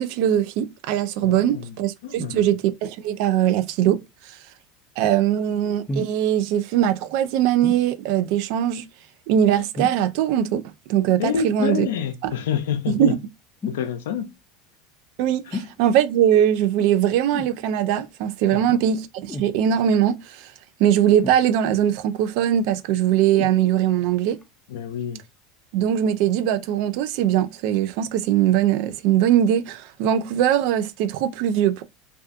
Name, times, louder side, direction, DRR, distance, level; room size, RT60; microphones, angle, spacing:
voice 1, 0.0-4.0 4.3-4.4 5.0-8.8 9.3-10.6 10.9-11.9 12.2-12.3 12.9-13.2 15.2-20.5 20.8-24.4 25.7-31.8, right 10 dB, 65° right, 0.3 m, -21 dB
voice 2, 1.2-1.7 2.0-2.4 11.2-13.2 13.7-14.3 15.5-15.6 18.5-18.8 24.7-25.2, left 7 dB, 80° left, 0.4 m, -27 dB
sound 1, 5.9-6.2 7.6-7.9 9.7-10.1 11.6-11.8 13.6-13.9 15.5-15.8 17.3-17.6 19.3-19.5 21.2-21.8 23.3-23.6 24.4-24.5, left 2 dB, 20° left, 0.5 m, -32 dB
2.3 x 2.3 x 2.5 m
hypercardioid pair, 90°, 0 cm